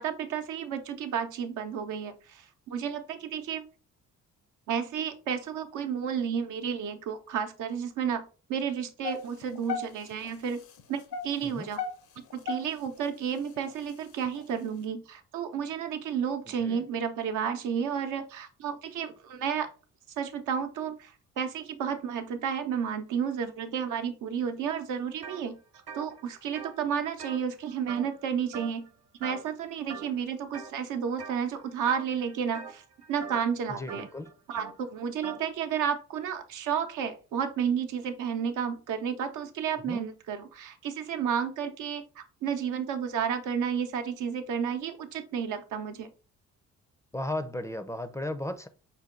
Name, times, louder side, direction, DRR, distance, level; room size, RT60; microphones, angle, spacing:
voice 1, 0.0-3.6 4.7-10.6 10.9-11.8 12.3-19.7 20.2-25.6 25.9-28.9 29.2-32.8 33.1-34.1 34.5-46.1, right 7 dB, 80° right, 0.8 m, -32 dB
sound 1, 9.0-10.3 10.8-13.0 13.5-13.7 14.2-14.4, left 6 dB, 80° left, 0.8 m, -34 dB
voice 2, 11.4-11.8 16.6-16.8 33.8-34.3 39.9-40.1 47.1-48.7, left 1 dB, 10° left, 0.4 m, -35 dB
sound 2, 25.2-25.4 25.7-28.3 28.5-28.9 29.2-29.6 29.9-30.7 31.2-31.5 31.8-35.5, right 6 dB, 55° right, 0.9 m, -43 dB
5.4 x 2.2 x 3.7 m
cardioid pair, 90°, 30 cm